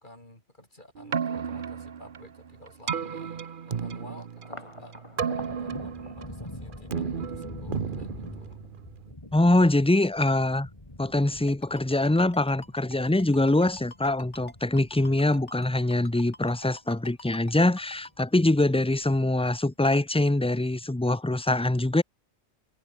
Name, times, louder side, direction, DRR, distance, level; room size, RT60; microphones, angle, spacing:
voice 1, 0.0-4.9 5.3-8.6, left 1 dB, 45° left, 7.2 m, -51 dB
Keyboard (musical), 0.9-9.1, right 7 dB, 50° right, 1.0 m, -34 dB
Thunder, 4.4-17.0 17.4-18.2 18.6-19.4, left 1 dB, 25° left, 3.2 m, -44 dB
voice 2, 9.3-10.7 11.0-22.0, left 2 dB, 5° left, 0.5 m, -23 dB
Ringtone, 11.5-18.2, left 2 dB, 80° left, 4.6 m, -45 dB
omnidirectional pair, 1.2 m